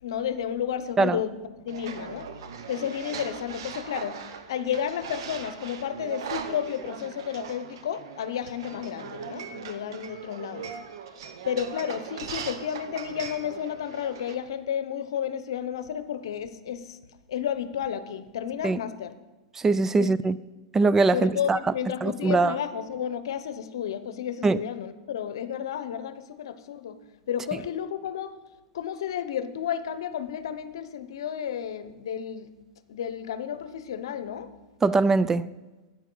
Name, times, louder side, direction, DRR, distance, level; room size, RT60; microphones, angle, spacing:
voice 1, 0.0-1.4 1.6-2.3 2.7-4.2 4.5-10.8 11.4-17.0 17.3-19.1 20.0-20.1 21.1-27.0 27.3-28.3 28.7-32.5 32.9-34.5, left 9 dB, 75° left, 0.8 m, -32 dB
sound 1, 1.7-14.3, right 6 dB, 70° right, 1.0 m, -40 dB
voice 2, 19.5-20.4 20.7-21.6 22.0-22.6 24.4-24.6 34.8-35.5, right 3 dB, 15° right, 0.3 m, -22 dB
13.0 x 9.2 x 3.9 m
hypercardioid pair, 110°, 3 cm